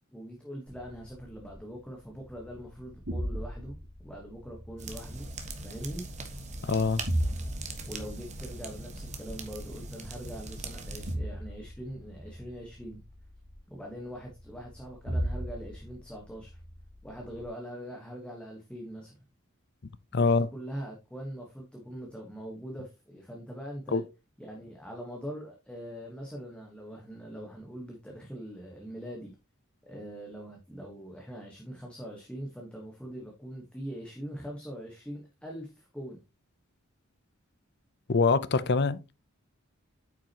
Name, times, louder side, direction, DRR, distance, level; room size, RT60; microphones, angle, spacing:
voice 1, 0.1-3.8 4.0-5.3 5.6-6.0 7.9-13.0 13.7-16.6 17.0-19.2 20.1-24.0 24.4-29.3 29.8-36.2, equal, 5° left, 1.3 m, -42 dB
sound 1, 0.7-17.5, equal, 80° right, 4.1 m, -39 dB
sound 2, 4.8-11.1, right 2 dB, 35° right, 1.4 m, -41 dB
voice 2, 6.6-7.0 20.1-20.5 23.9-24.0 38.1-39.1, left 4 dB, 50° left, 0.6 m, -24 dB
8.7 x 6.0 x 2.9 m
head